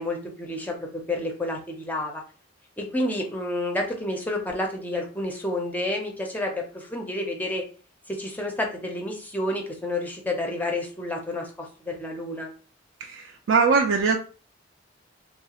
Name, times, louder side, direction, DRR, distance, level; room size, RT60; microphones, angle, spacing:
voice 1, 0.0-2.2 2.8-7.6 8.1-12.5, left 1 dB, 10° left, 1 dB, 0.5 m, -30 dB
voice 2, 13.0-14.2, right 5 dB, 75° right, 2 dB, 0.4 m, -21 dB
3.1 x 2.3 x 2.8 m, 0.38 s
head